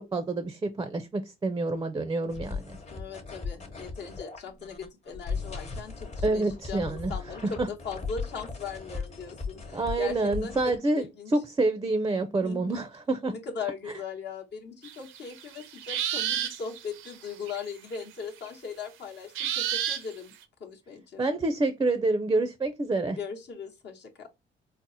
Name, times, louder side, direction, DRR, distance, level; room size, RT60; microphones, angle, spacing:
voice 1, 0.0-2.8 6.2-7.1 7.6-7.7 9.7-13.3 21.2-23.2, right 2 dB, 20° right, 0.4 m, -27 dB
sound 1, 2.3-10.8, left 4 dB, 35° left, 0.9 m, -37 dB
voice 2, 2.9-11.3 12.4-12.9 13.3-20.3 20.6-21.3 23.1-24.3, left 6 dB, 60° left, 0.9 m, -39 dB
sound 2, 14.8-17.6 17.9-18.0 18.4-18.5 19.4-20.3, right 10 dB, 85° right, 0.5 m, -31 dB
4.0 x 2.0 x 2.7 m
cardioid pair, 90°, 20 cm